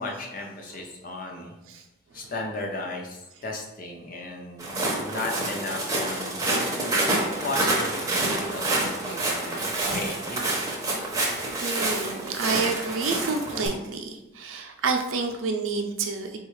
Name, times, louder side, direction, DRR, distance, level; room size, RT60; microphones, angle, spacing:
voice 1, 0.0-1.5 2.1-4.7 5.0-6.4 7.4-10.7, left 2 dB, 40° left, 0 dB, 0.6 m, -35 dB
Walk footsteps, 4.6-13.7, right 2 dB, 15° right, 0.6 m, -27 dB
voice 2, 11.6-16.4, right 4 dB, 80° right, 4 dB, 0.5 m, -29 dB
4.1 x 2.3 x 3.1 m, 0.97 s
head